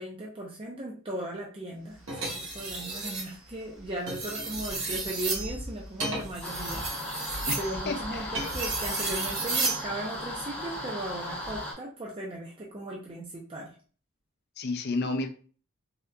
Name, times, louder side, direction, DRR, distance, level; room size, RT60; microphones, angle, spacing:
voice 1, 0.0-13.8, right 1 dB, 25° right, -3 dB, 0.5 m, -37 dB
sound 1, 2.1-3.3 3.9-9.9 11.3-11.6, right 3 dB, 65° right, 1.3 m, -33 dB
sound 2, 6.4-11.7, left 1 dB, 5° left, 0.8 m, -37 dB
voice 2, 7.9-8.3 14.6-15.3, left 3 dB, 50° left, 6 dB, 0.4 m, -31 dB
3.5 x 2.7 x 2.2 m, 0.40 s
head